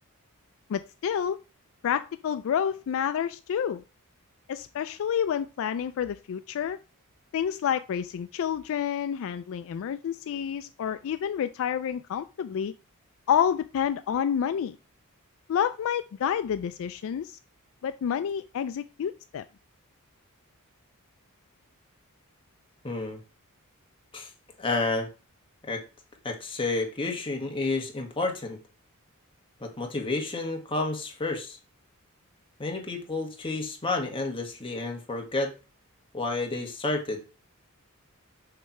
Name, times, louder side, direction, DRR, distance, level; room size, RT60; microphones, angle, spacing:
voice 1, 0.7-1.4 1.8-3.8 4.5-6.8 7.3-12.7 13.3-14.8 15.5-17.4 17.8-19.4, left 8 dB, 65° left, 0.3 m, -29 dB
voice 2, 22.8-23.2 24.1-24.3 24.6-25.1 25.7-25.8 26.2-28.6 29.6-31.6 32.6-35.5 36.1-37.2, left 3 dB, 25° left, 1.4 m, -30 dB
6.5 x 3.2 x 5.7 m
head